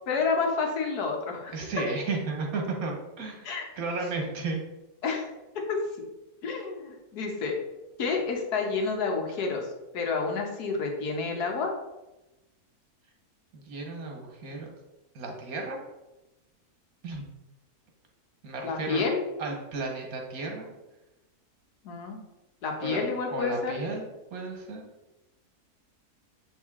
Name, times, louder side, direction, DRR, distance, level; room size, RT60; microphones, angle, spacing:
voice 1, 0.1-1.5 3.4-3.7 5.0-5.3 5.7-5.8 6.4-7.6 8.0-9.7 9.9-11.7 18.6-19.2 21.8-22.2 22.6-23.7, left 4 dB, 80° left, 2 dB, 1.6 m, -29 dB
voice 2, 1.5-4.6 13.5-14.7 15.1-15.8 17.0-17.3 18.4-19.0 19.4-20.7 22.8-23.0 23.3-24.8, right 3 dB, 70° right, 2 dB, 1.6 m, -34 dB
7.4 x 3.5 x 3.6 m, 1.0 s
omnidirectional pair, 1.6 m